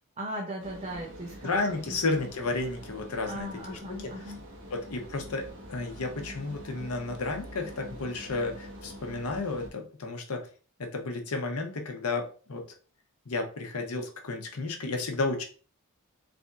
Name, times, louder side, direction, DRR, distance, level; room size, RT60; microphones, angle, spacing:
voice 1, 0.2-2.0 3.3-4.4, right 1 dB, 30° right, -2 dB, 0.7 m, -38 dB
sound 1, 0.6-9.7, equal, 60° right, 0.9 m, -45 dB
voice 2, 1.4-4.2 4.7-10.5 10.8-12.6 13.3-15.4, left 3 dB, 85° left, 4 dB, 0.9 m, -32 dB
3.4 x 2.7 x 3.5 m, 0.39 s
head